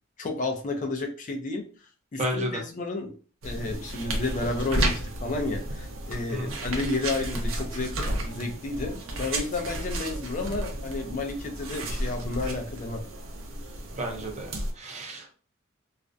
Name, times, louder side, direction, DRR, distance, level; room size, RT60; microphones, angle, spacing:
voice 1, 0.2-1.6 2.1-3.1 3.4-13.0, left 3 dB, 40° left, 4 dB, 0.4 m, -31 dB
voice 2, 2.2-2.6 6.3-6.5 14.0-15.3, right 1 dB, 35° right, 1 dB, 0.6 m, -32 dB
sound 1, 3.4-14.7, right 1 dB, 80° right, 0.6 m, -33 dB
2.4 x 2.1 x 2.5 m, 0.38 s
head